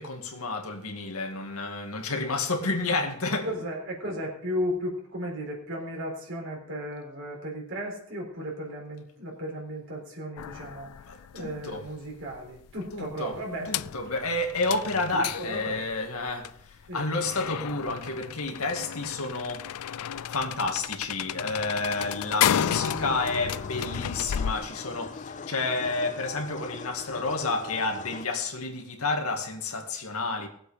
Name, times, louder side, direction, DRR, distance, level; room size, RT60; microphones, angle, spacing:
voice 1, 0.0-3.5 11.1-11.9 12.9-13.4 13.7-19.8 20.3-30.5, left 3 dB, 70° left, 2.2 m, -30 dB
voice 2, 3.4-10.9 11.3-13.7 15.1-15.8 16.9-17.1, equal, 60° right, 4.0 m, -35 dB
sound 1, 10.4-24.5, left 9 dB, 90° left, 0.4 m, -33 dB
sound 2, 21.9-28.2, left 4 dB, 35° left, 0.5 m, -40 dB
18.5 x 8.0 x 5.1 m
head